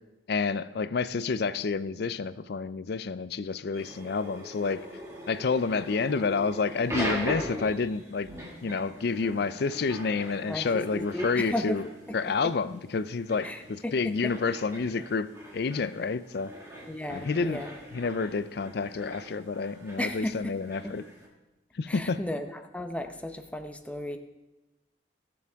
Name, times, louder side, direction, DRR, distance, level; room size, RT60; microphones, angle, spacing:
voice 1, 0.3-4.9 5.3-8.3 8.6-11.8 12.1-15.3 15.5-16.5 17.1-17.6 17.9-21.0 21.7-22.2, left 4 dB, 60° left, 15 dB, 0.4 m, -29 dB
sound 1, 3.7-21.3, equal, 15° right, 2.0 m, -41 dB
voice 2, 10.5-11.8 13.4-13.9 16.9-17.7 20.0-20.5 20.8-20.9 21.9-24.2, left 1 dB, 5° left, 6 dB, 0.7 m, -34 dB
20.0 x 7.0 x 3.5 m, 1.0 s
head